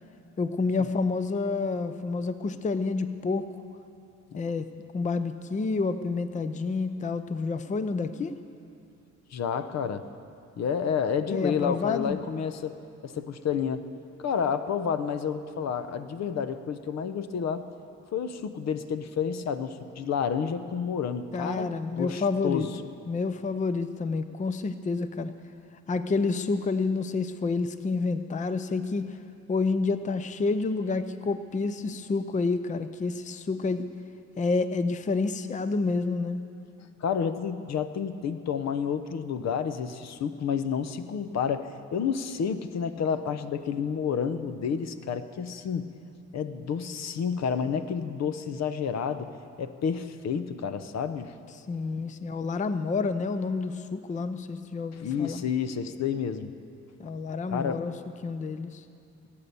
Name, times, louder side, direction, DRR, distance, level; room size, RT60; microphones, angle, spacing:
voice 1, 0.4-3.5 4.4-4.7 4.9-8.3 11.3-12.2 21.3-22.7 23.1-25.3 25.9-29.2 29.5-33.9 34.4-36.4 51.7-55.4 57.0-57.9 58.2-58.8, left 4 dB, 25° left, 11 dB, 0.5 m, -29 dB
voice 2, 9.3-10.1 10.6-12.8 13.0-13.8 14.2-17.7 18.1-21.7 21.9-22.7 37.0-45.9 46.3-49.3 49.6-51.3 54.9-56.5 57.5-57.9, left 7 dB, 60° left, 11 dB, 0.8 m, -30 dB
18.5 x 8.8 x 6.8 m, 2.5 s
cardioid pair, 90°, 30 cm